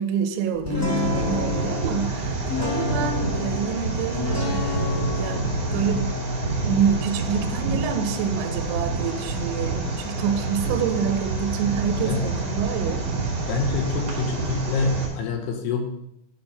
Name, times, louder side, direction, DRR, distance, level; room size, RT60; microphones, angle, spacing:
voice 1, 0.0-6.1 6.7-13.1 13.4-13.5, right 7 dB, 80° right, 7 dB, 3.0 m, -27 dB
sound 1, 0.6-12.1, left 3 dB, 10° left, 1.7 m, -31 dB
sound 2, 0.8-15.1, right 3 dB, 35° right, 2.8 m, -28 dB
voice 2, 13.5-15.9, left 5 dB, 75° left, 4 dB, 2.7 m, -26 dB
12.0 x 4.5 x 5.3 m, 0.81 s
omnidirectional pair, 5.3 m